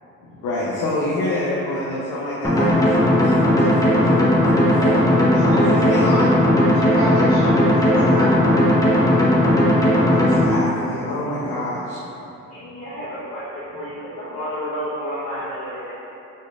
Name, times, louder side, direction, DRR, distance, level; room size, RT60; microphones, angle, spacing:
voice 1, 0.2-3.3 3.6-4.7 5.3-6.4 6.6-6.8 7.8-8.3 10.1-12.0, left 1 dB, 85° left, -7 dB, 0.6 m, -27 dB
sound 1, 2.4-10.4, left 1 dB, 10° left, 0.7 m, -16 dB
voice 2, 4.7-6.0 6.9-8.4, right 1 dB, 45° right, -9 dB, 0.9 m, -30 dB
voice 3, 12.5-15.9, equal, 60° left, -12 dB, 1.1 m, -31 dB
4.1 x 3.2 x 2.4 m, 3.0 s
cardioid pair, 90°, 30 cm